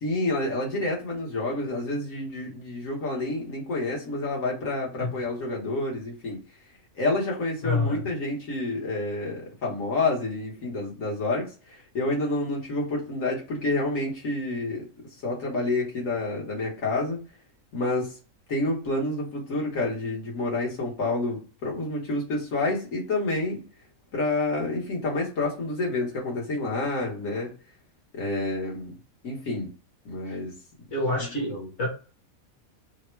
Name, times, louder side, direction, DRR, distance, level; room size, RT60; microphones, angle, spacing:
voice 1, 0.0-6.4 7.0-14.8 15.2-17.2 17.7-18.2 18.5-23.6 24.1-27.5 28.1-28.9 29.2-29.7 30.0-30.5 31.2-31.7, left 2 dB, 70° left, -2 dB, 1.7 m, -29 dB
voice 2, 7.6-8.0 30.3-30.4 30.9-31.9, left 2 dB, 55° left, -1 dB, 1.4 m, -27 dB
3.4 x 2.2 x 4.4 m, 0.36 s
omnidirectional pair, 1.4 m